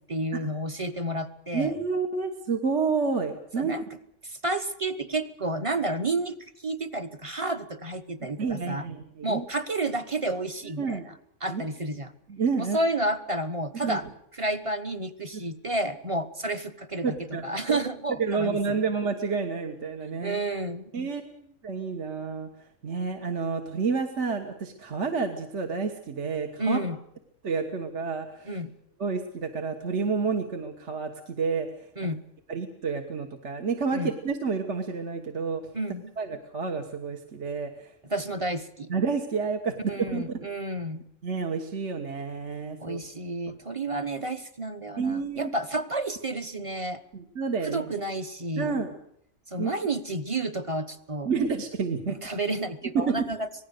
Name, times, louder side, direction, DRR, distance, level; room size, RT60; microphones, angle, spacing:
voice 1, 0.0-1.7 3.6-3.8 4.2-8.8 9.2-11.0 11.4-12.1 12.6-14.1 14.4-17.1 17.4-18.6 20.2-20.9 26.6-27.0 28.4-28.7 32.0-32.2 33.9-34.1 35.7-36.1 38.1-38.9 39.9-41.0 42.8-47.0 47.6-48.7 49.5-51.3 52.1-53.5, right 2 dB, 25° right, 8 dB, 1.0 m, -30 dB
voice 2, 1.5-3.7 8.4-9.4 10.6-11.0 11.5-11.6 12.3-12.8 13.7-14.0 15.3-15.4 17.0-17.8 18.2-20.4 20.9-22.5 22.8-26.8 27.4-28.6 29.0-31.7 32.5-35.6 36.2-37.9 38.9-40.5 41.2-43.0 45.0-45.5 47.1-47.9 48.6-48.9 49.6-49.7 51.3-52.2 53.0-53.3, right 5 dB, 55° right, 4 dB, 1.7 m, -29 dB
26.0 x 19.0 x 6.6 m, 0.71 s
omnidirectional pair, 1.4 m